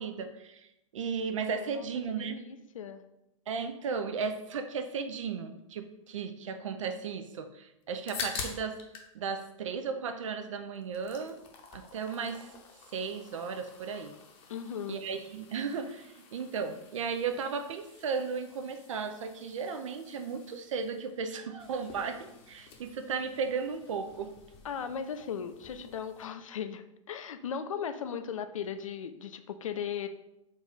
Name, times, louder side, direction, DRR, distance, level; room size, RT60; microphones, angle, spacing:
voice 1, 0.0-2.4 3.5-8.8 9.1-11.4 11.7-12.5 12.9-14.2 14.9-24.3, right 5 dB, 70° right, 8 dB, 0.4 m, -35 dB
voice 2, 1.6-3.0 14.5-15.0 24.6-30.1, left 7 dB, 75° left, 10 dB, 0.4 m, -37 dB
sound 1, 7.8-9.1 9.4-10.4 10.7-26.3, left 5 dB, 35° left, 0.7 m, -47 dB
3.9 x 2.5 x 3.9 m, 0.88 s
figure-of-eight pair, 100°, 17 cm